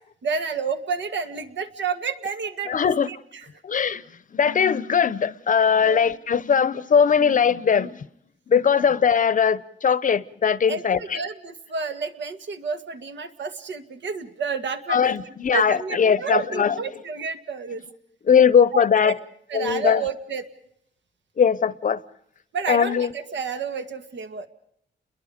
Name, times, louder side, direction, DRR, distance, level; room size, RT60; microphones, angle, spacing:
voice 1, 0.2-3.5 5.8-6.2 8.8-8.9 10.7-17.8 18.7-19.1 19.5-20.5 22.5-24.5, right 5 dB, 75° right, 2.0 m, -30 dB
voice 2, 2.7-3.1 3.6-4.0 4.3-8.0 8.5-11.2 14.9-16.7 18.3-19.1 19.5-20.0 21.4-22.0 22.7-23.1, left 7 dB, 45° left, 0.8 m, -20 dB
30.0 x 22.5 x 5.1 m
wide cardioid pair, 135°, 19 cm